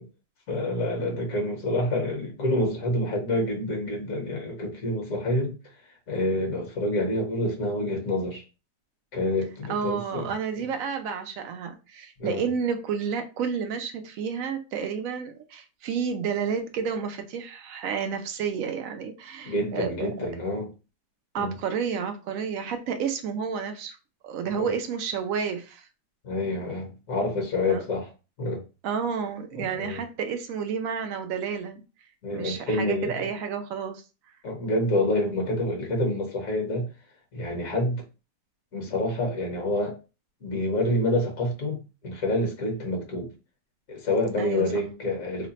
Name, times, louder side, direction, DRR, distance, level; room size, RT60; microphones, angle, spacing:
voice 1, 0.5-5.5 5.8-8.4 9.1-10.3 12.2-12.5 19.4-20.7 21.4-21.6 24.5-24.7 26.2-28.1 28.4-28.6 29.6-30.0 32.2-33.2 34.4-36.9 37.3-38.0 38.7-40.0 40.4-43.3 43.9-45.5, left 1 dB, 55° left, 1.3 m, -27 dB
voice 2, 9.7-20.3 21.3-24.0 24.2-25.9 27.7-27.8 28.8-31.8 32.3-34.0 44.4-44.7, right 6 dB, 70° right, 0.8 m, -31 dB
3.2 x 2.1 x 4.0 m
omnidirectional pair, 1.9 m